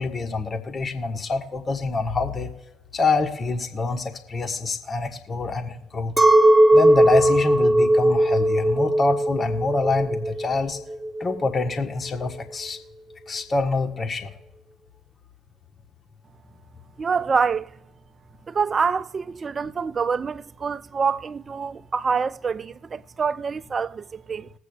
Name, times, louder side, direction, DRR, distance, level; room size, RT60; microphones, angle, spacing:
voice 1, 0.0-2.5 2.9-6.1 6.7-10.8 11.2-12.8 13.3-14.3, left 3 dB, 35° left, 1.4 m, -26 dB
Chink clink, 6.2-11.6, right 1 dB, 15° right, 0.9 m, -18 dB
voice 2, 17.0-17.7 18.5-24.5, right 5 dB, 40° right, 0.4 m, -26 dB
21.0 x 8.2 x 2.3 m
hypercardioid pair, 50°, 0 cm